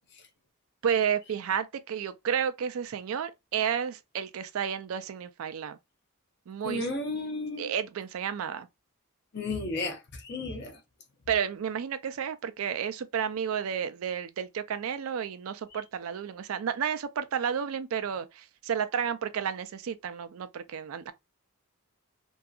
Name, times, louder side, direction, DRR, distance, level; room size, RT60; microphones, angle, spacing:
voice 1, 0.8-5.8 6.5-6.8 7.6-8.7 11.3-21.1, right 8 dB, 75° right, 0.4 m, -31 dB
voice 2, 6.6-7.7 9.3-10.8 15.7-15.8, left 2 dB, 50° left, 0.7 m, -34 dB
2.7 x 2.3 x 2.4 m
head